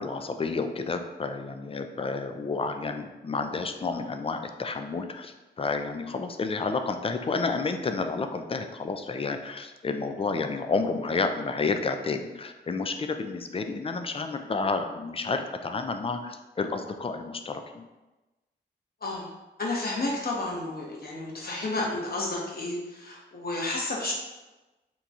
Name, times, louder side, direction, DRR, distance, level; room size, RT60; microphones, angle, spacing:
voice 1, 0.0-17.8 21.8-21.9, left 4 dB, 30° left, 7 dB, 0.4 m, -30 dB
voice 2, 19.6-24.1, left 2 dB, 55° left, -3 dB, 1.0 m, -31 dB
3.0 x 2.3 x 4.0 m, 1.1 s
cardioid pair, 50°, 19 cm